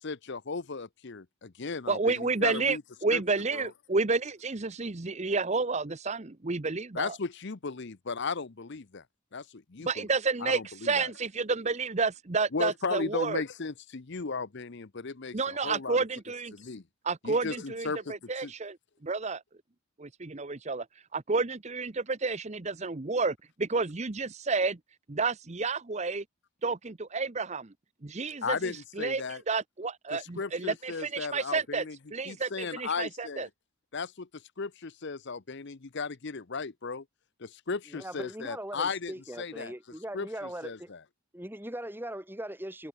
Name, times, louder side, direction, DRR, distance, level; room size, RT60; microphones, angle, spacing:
voice 1, 0.0-2.8 3.1-3.2 3.5-3.7 6.9-9.0 9.3-10.0 10.4-11.1 12.5-16.0 16.5-16.8 17.2-18.5 28.4-29.4 30.2-32.0 32.3-33.5 33.9-37.0 37.4-39.7 40.1-41.0, left 4 dB, 55° left, 0.8 m, -36 dB
voice 2, 1.9-7.2 9.8-13.4 15.3-16.5 17.0-18.8 19.0-19.4 20.0-20.9 21.1-24.8 25.1-26.2 26.6-27.7 28.0-28.6 29.0-31.8 32.1-33.5, right 4 dB, 30° right, 0.8 m, -30 dB
voice 3, 37.9-40.9 41.3-42.9, right 1 dB, 10° right, 3.1 m, -40 dB
head